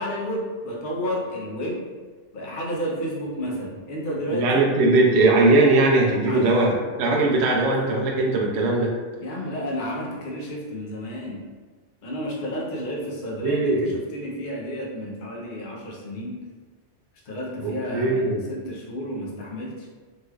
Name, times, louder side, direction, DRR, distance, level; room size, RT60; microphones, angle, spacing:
voice 1, 0.0-1.8 2.3-4.5 6.3-6.5 7.1-7.6 9.2-11.4 12.0-16.4 17.3-19.9, equal, 50° left, -3 dB, 0.7 m, -31 dB
voice 2, 4.3-8.9 13.4-13.9 17.6-18.4, right 2 dB, 65° right, -2 dB, 0.8 m, -20 dB
3.1 x 3.0 x 2.3 m, 1.4 s
omnidirectional pair, 1.3 m